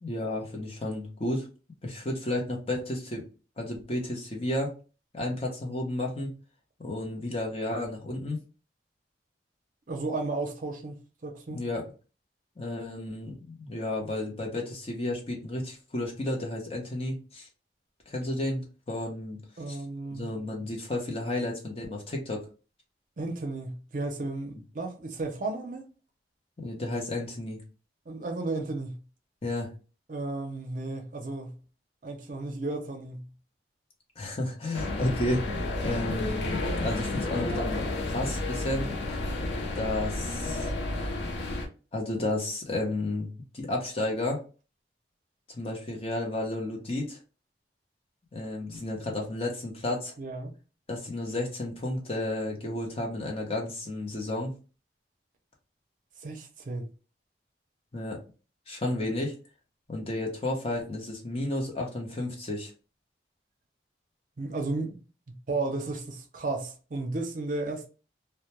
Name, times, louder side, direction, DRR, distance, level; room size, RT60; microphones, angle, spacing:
voice 1, 0.0-1.5 1.8-3.2 3.6-4.7 5.1-6.3 6.8-8.4 11.5-11.8 12.6-17.5 18.1-19.4 19.7-19.8 20.1-22.4 26.6-27.6 29.4-29.7 34.2-38.9 39.7-40.7 41.9-43.3 43.5-44.4 45.5-47.2 48.3-50.1 50.9-54.5 57.9-58.2 58.7-59.3 59.9-62.7, left 1 dB, 35° left, 0.7 m, -32 dB
voice 2, 9.9-11.0 11.2-11.6 19.6-20.3 23.2-25.8 28.1-29.0 30.1-31.6 32.0-33.3 50.2-50.5 56.2-56.9 64.4-65.0 65.3-67.9, right 2 dB, 45° right, 0.5 m, -33 dB
sound 1, 34.7-41.7, left 2 dB, 85° left, 0.5 m, -31 dB
2.1 x 2.1 x 2.8 m
head